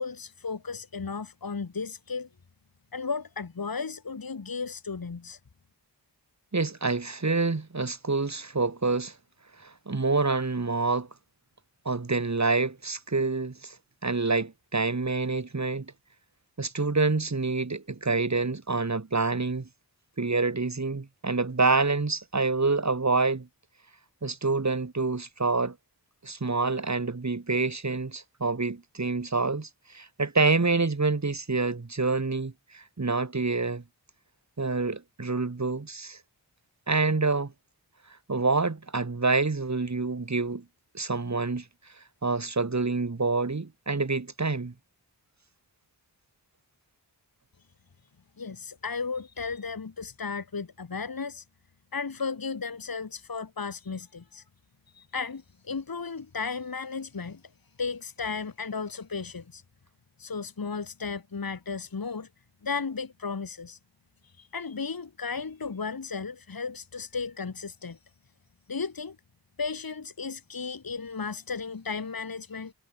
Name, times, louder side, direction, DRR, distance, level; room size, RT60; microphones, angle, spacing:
voice 1, 0.0-2.3 2.9-5.4 48.4-51.4 51.9-54.4 54.9-57.4 57.8-59.6 60.2-62.3 62.6-63.8 64.2-68.0 68.7-69.2 69.6-72.7, left 5 dB, 55° left, 1.8 m, -34 dB
voice 2, 6.5-9.2 9.6-11.1 11.9-13.8 14.0-15.9 16.6-19.7 20.2-23.5 24.2-25.8 26.2-33.8 34.6-36.2 36.9-37.5 38.3-40.6 40.9-41.7 42.2-44.7, right 3 dB, 40° right, 2.3 m, -27 dB
wide cardioid pair, 55°, 42 cm